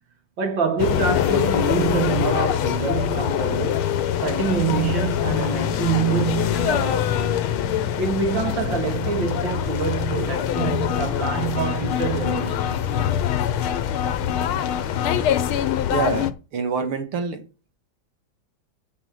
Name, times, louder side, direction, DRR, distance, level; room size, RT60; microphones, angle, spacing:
voice 1, 0.4-3.9 4.2-7.4 8.0-12.9, right 6 dB, 55° right, 3.0 m, -26 dB
sound 1, 0.8-16.3, left 10 dB, 75° left, 1.7 m, -24 dB
voice 2, 15.9-17.4, right 5 dB, 80° right, 2.7 m, -26 dB
8.1 x 6.9 x 7.7 m
omnidirectional pair, 2.4 m